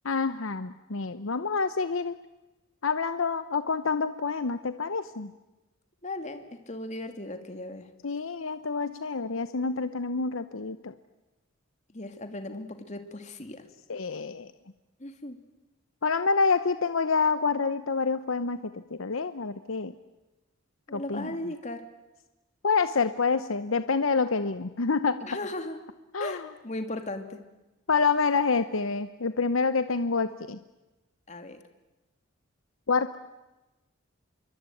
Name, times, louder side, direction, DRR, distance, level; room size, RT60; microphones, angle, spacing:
voice 1, 0.0-2.1 2.8-5.3 8.0-10.9 13.9-14.5 16.0-19.9 20.9-21.4 22.6-25.2 26.1-26.5 27.9-30.6 32.9-33.2, left 4 dB, 85° left, 11 dB, 0.9 m, -27 dB
voice 2, 6.0-7.9 11.9-13.7 15.0-15.4 20.9-21.8 25.2-25.8 26.2-27.4 31.3-31.6, left 2 dB, 35° left, 7 dB, 2.5 m, -37 dB
26.0 x 23.0 x 9.2 m, 1.0 s
head